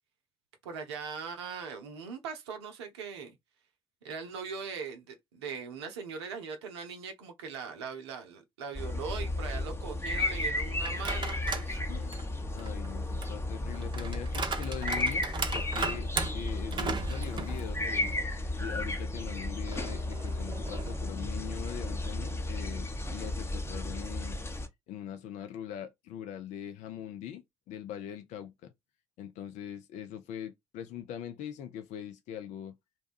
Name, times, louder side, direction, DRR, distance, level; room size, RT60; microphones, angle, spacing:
voice 1, 0.6-3.4 4.0-11.8, right 6 dB, 80° right, 0.6 m, -40 dB
sound 1, 8.7-24.7, left 2 dB, 20° left, 0.8 m, -34 dB
sound 2, 10.8-11.7 12.1-18.2 18.6-18.7 19.7-21.1, right 4 dB, 35° right, 0.6 m, -37 dB
voice 2, 11.9-12.2 12.5-18.2 18.6-24.4 24.9-28.7 29.2-32.8, left 9 dB, 60° left, 0.4 m, -42 dB
2.7 x 2.2 x 2.4 m
figure-of-eight pair, 45°, 14 cm